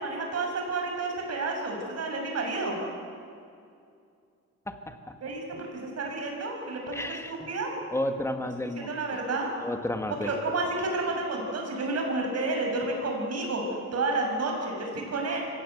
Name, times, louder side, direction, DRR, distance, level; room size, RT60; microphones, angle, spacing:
voice 1, 0.0-2.8 5.2-7.0 7.3-7.7 8.8-9.5 10.2-13.6 13.9-15.4, right 3 dB, 55° right, 1 dB, 6.7 m, -30 dB
voice 2, 4.7-5.1 6.9-7.5 7.9-9.2 9.6-10.3, left 1 dB, 10° left, 6 dB, 2.0 m, -32 dB
24.5 x 17.0 x 8.1 m, 2.4 s
cardioid pair, 90°, 30 cm